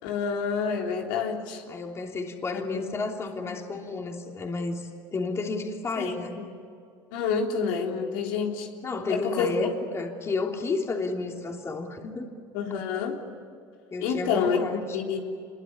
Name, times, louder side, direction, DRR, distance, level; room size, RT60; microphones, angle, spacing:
voice 1, 0.0-1.6 2.5-3.0 3.4-3.6 6.0-6.5 7.1-8.7 9.1-9.7 12.5-13.2 14.0-15.2, left 6 dB, 85° left, 1 dB, 3.6 m, -28 dB
voice 2, 1.7-6.4 8.8-12.3 13.9-15.0, left 3 dB, 25° left, 2 dB, 3.1 m, -31 dB
27.0 x 22.5 x 9.7 m, 2.3 s
supercardioid pair, 115°, 10 cm